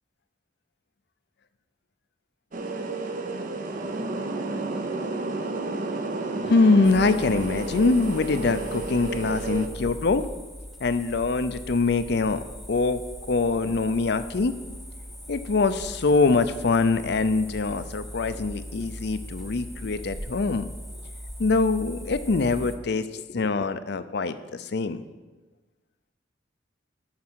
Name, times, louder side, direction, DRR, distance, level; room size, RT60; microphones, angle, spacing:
sound 1, 2.5-9.7, right 2 dB, 45° right, 0.7 m, -31 dB
voice 1, 6.4-10.2 10.8-12.4 12.7-13.0 13.3-14.5 15.3-20.7 21.4-25.0, left 3 dB, 65° left, 12 dB, 0.5 m, -23 dB
sound 2, 6.8-22.8, equal, ahead, 0.8 m, -40 dB
13.0 x 4.8 x 6.2 m, 1.2 s
head